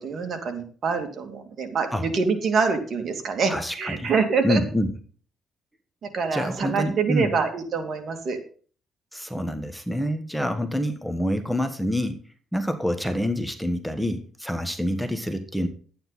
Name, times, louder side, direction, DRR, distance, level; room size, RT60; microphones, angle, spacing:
voice 1, 0.0-4.6 6.0-8.4, right 5 dB, 55° right, 5 dB, 2.4 m, -26 dB
voice 2, 3.5-4.1 4.4-4.9 6.3-7.3 9.1-12.2 12.5-15.7, equal, ahead, 8 dB, 1.3 m, -27 dB
11.5 x 9.3 x 4.2 m, 0.42 s
cardioid pair, 90°, 0 cm